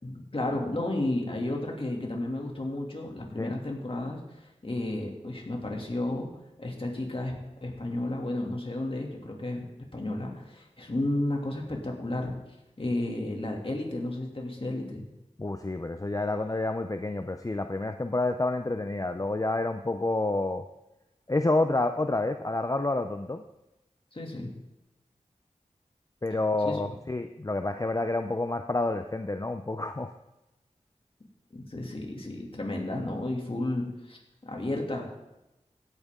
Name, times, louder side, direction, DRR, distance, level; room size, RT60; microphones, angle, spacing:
voice 1, 0.0-6.3 6.6-7.3 7.6-12.3 12.8-15.0 24.1-24.5 26.6-26.8 31.5-35.1, left 1 dB, 45° left, 0 dB, 2.6 m, -32 dB
voice 2, 15.4-20.6 21.3-23.4 26.2-30.1, left 2 dB, 25° left, 7 dB, 0.6 m, -29 dB
16.5 x 9.0 x 3.8 m, 0.95 s
wide cardioid pair, 60°, 13 cm